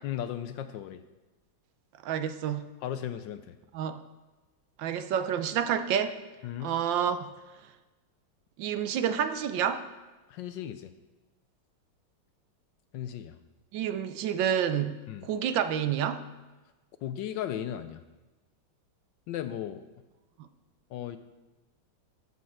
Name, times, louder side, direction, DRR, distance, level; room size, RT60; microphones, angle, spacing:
voice 1, 0.0-1.0 2.8-3.6 6.4-6.7 10.3-10.9 12.9-13.4 15.1-15.3 17.0-18.0 19.3-19.8 20.9-21.2, left 10 dB, 75° left, 10 dB, 1.1 m, -36 dB
voice 2, 2.0-2.7 3.7-4.0 4.8-6.1 6.6-7.3 8.6-9.9 13.7-16.2 20.4-20.5, right 8 dB, 70° right, 10 dB, 1.3 m, -29 dB
13.5 x 5.4 x 6.4 m, 1.2 s
omnidirectional pair, 2.2 m